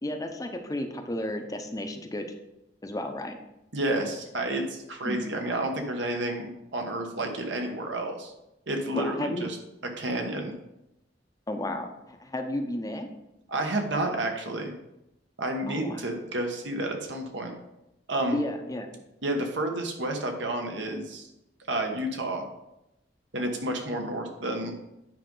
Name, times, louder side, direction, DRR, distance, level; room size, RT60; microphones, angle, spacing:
voice 1, 0.0-2.3 2.8-3.4 5.0-5.2 8.9-9.5 11.5-13.1 15.7-16.0 18.3-18.9, left 1 dB, 20° left, 5 dB, 0.6 m, -32 dB
voice 2, 3.7-8.3 8.7-9.6 10.0-10.5 13.5-14.7 15.4-17.5 18.1-18.4 19.2-21.3 21.7-22.5 23.3-24.7, right 1 dB, 80° right, 3 dB, 1.2 m, -30 dB
9.0 x 5.2 x 3.8 m, 0.90 s
head